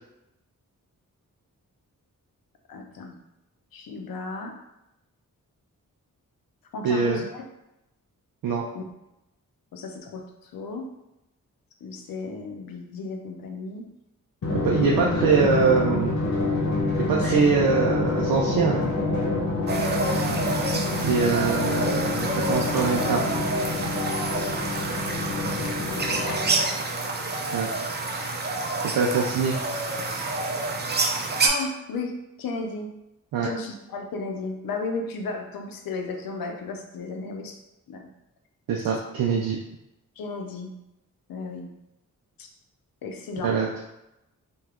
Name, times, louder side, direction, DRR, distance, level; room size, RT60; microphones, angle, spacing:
voice 1, 2.7-3.2 3.7-4.5 6.7-7.4 8.7-8.8 9.7-10.9 11.8-13.8 17.0-17.4 25.9-26.5 31.4-32.9 33.4-37.6 37.9-38.1 38.8-39.0 40.2-40.7 41.3-41.7 42.4-42.5 43.0-43.6, left 3 dB, 80° left, 3 dB, 0.6 m, -34 dB
voice 2, 6.8-7.2 8.4-8.6 14.6-16.2 17.1-18.8 21.0-23.3 27.5-27.7 28.8-29.5 33.3-33.5 38.7-39.6 43.4-43.8, right 5 dB, 80° right, -2 dB, 0.5 m, -23 dB
Drum, 14.4-26.8, left 2 dB, 55° left, 1.0 m, -27 dB
sound 1, 19.7-31.5, right 3 dB, 30° right, 0.5 m, -28 dB
2.8 x 2.3 x 3.6 m, 0.90 s
cardioid pair, 65°, 34 cm